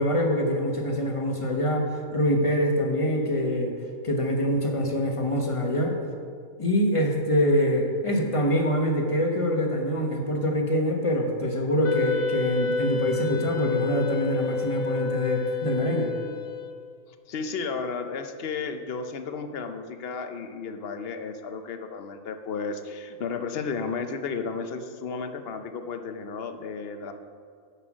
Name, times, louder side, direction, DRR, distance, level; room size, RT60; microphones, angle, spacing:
voice 1, 0.0-3.7 4.0-6.0 6.6-16.1, equal, 25° left, 2 dB, 1.1 m, -25 dB
Wind instrument woodwind instrument, 11.8-17.0, left 4 dB, 85° left, 1.2 m, -30 dB
voice 2, 17.1-27.1, left 5 dB, 55° left, 8 dB, 0.8 m, -33 dB
9.8 x 5.7 x 6.1 m, 2.2 s
omnidirectional pair, 1.5 m